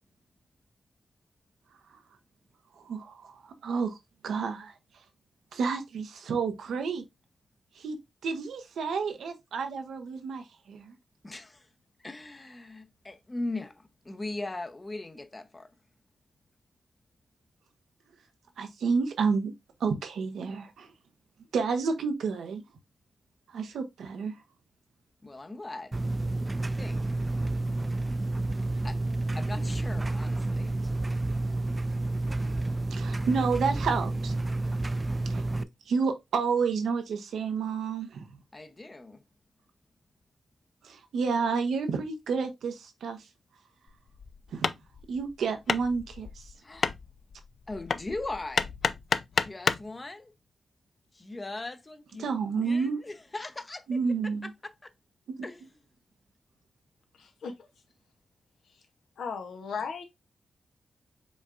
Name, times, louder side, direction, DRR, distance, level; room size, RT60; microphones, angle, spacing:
voice 1, 2.8-4.0 4.2-4.7 5.5-7.0 7.8-8.0 8.2-11.0 18.6-19.5 19.8-20.9 21.5-22.6 23.5-24.3 32.9-34.4 35.3-35.5 35.9-38.4 40.8-43.3 44.5-44.7 45.1-46.5 52.2-53.0 53.9-54.5 55.3-55.5, right 5 dB, 85° right, 0.8 m, -30 dB
voice 2, 11.2-11.7 12.0-15.7 25.2-26.0 26.6-27.1 28.8-29.0 29.3-30.8 38.5-39.2 46.6-46.9 47.7-48.7 49.4-50.3 51.1-54.0 54.4-54.9 55.4-55.6, left 2 dB, 30° left, 0.7 m, -39 dB
sound 1, 25.9-35.6, right 2 dB, 30° right, 0.4 m, -30 dB
Hammer, 43.9-49.9, left 5 dB, 65° left, 0.3 m, -31 dB
voice 3, 57.1-57.7 58.7-58.8 59.2-60.0, left 5 dB, 85° left, 0.8 m, -37 dB
5.2 x 3.5 x 2.5 m
cardioid pair, 50°, 0 cm